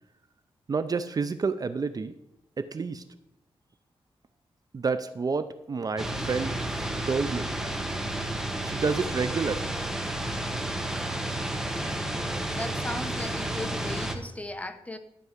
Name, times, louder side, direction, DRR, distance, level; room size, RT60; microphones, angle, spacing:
voice 1, 0.7-2.1 2.6-3.0 4.7-6.6 7.0-7.5 8.6-9.7, right 4 dB, 40° right, 12 dB, 0.6 m, -29 dB
sound 1, 6.0-14.1, right 1 dB, 5° right, 1.2 m, -31 dB
voice 2, 12.6-15.0, left 2 dB, 15° left, 9 dB, 0.9 m, -37 dB
12.5 x 4.7 x 8.1 m, 0.82 s
wide cardioid pair, 110°, 10 cm